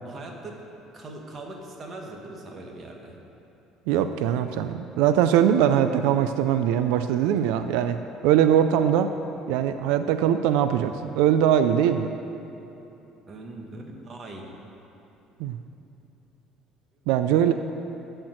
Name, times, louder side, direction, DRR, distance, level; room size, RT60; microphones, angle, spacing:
voice 1, 0.0-0.5 0.9-3.2 12.6-12.7 13.3-14.5, right 2 dB, 25° right, 1 dB, 1.1 m, -40 dB
voice 2, 3.9-8.0 8.2-9.1 9.5-12.1 15.4-15.6 17.1-17.5, right 9 dB, 85° right, 9 dB, 0.4 m, -21 dB
13.5 x 4.5 x 7.7 m, 3.0 s
cardioid pair, 180°, 0 cm